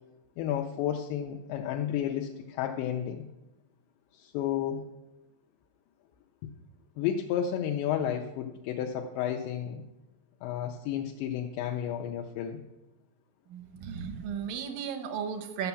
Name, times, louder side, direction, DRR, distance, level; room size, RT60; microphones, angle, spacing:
voice 1, 0.4-3.2 4.1-4.9 7.0-9.8 10.4-12.6, left 9 dB, 80° left, 2 dB, 2.8 m, -32 dB
voice 2, 13.5-15.7, right 7 dB, 75° right, 6 dB, 2.1 m, -35 dB
12.5 x 5.8 x 7.0 m, 0.99 s
omnidirectional pair, 5.2 m